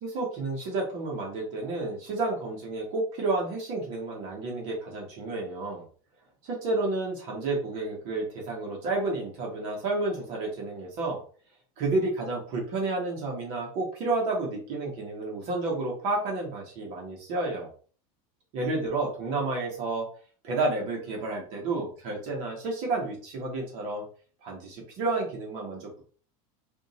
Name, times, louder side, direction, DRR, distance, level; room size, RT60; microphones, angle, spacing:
voice 1, 0.0-5.8 6.4-11.2 11.8-17.7 18.5-20.1 20.4-24.0 24.4-26.0, right 2 dB, 40° right, -1 dB, 1.3 m, -30 dB
3.5 x 2.7 x 4.1 m, 0.41 s
supercardioid pair, 175°, 19 cm